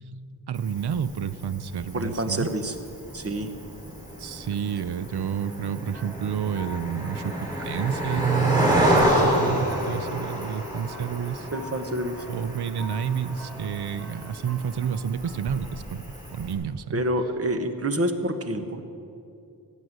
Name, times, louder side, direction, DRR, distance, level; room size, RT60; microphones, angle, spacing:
Cricket, 0.5-16.5, equal, 10° right, 4.1 m, -29 dB
voice 1, 0.5-2.5 4.2-11.5 12.3-17.0, right 8 dB, 70° right, 15 dB, 0.6 m, -29 dB
voice 2, 1.9-2.7 3.1-3.5 11.5-12.2 16.9-18.8, right 1 dB, 35° right, 8 dB, 1.2 m, -27 dB
sound 1, 5.9-15.8, left 1 dB, 5° left, 3.2 m, -46 dB
15.5 x 8.3 x 9.2 m, 2.6 s
wide cardioid pair, 115°, 41 cm